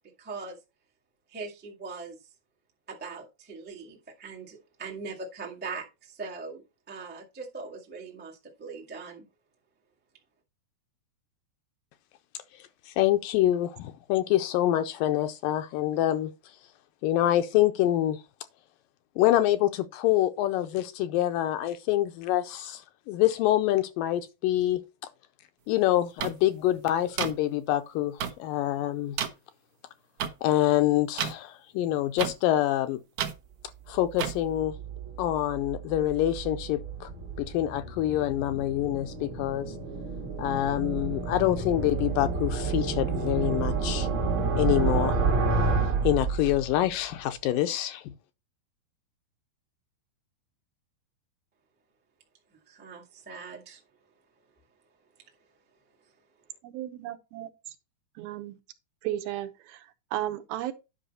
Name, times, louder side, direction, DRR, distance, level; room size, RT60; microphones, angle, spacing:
voice 1, 0.2-0.6 1.3-2.3 2.9-9.3 52.5-53.8, right 4 dB, 15° right, 0.3 m, -41 dB
voice 2, 12.9-16.3 17.0-18.2 19.2-24.8 25.7-29.2 30.4-33.0 33.9-34.7 35.2-37.1 37.4-39.7 40.4-44.1 44.6-45.2 46.0-48.1, left 13 dB, 80° left, 2.1 m, -26 dB
sound 1, 26.2-26.3 27.2-27.3 28.2-28.3 29.2-29.3 30.2-30.3 31.2-31.3 32.2-32.3 33.2-33.3 34.2-34.3, right 9 dB, 65° right, 2.1 m, -29 dB
sound 2, 34.0-46.9, right 4 dB, 50° right, 1.5 m, -30 dB
voice 3, 56.6-57.8 58.2-58.6 59.0-60.7, right 13 dB, 85° right, 2.8 m, -35 dB
10.0 x 5.5 x 4.2 m
omnidirectional pair, 4.3 m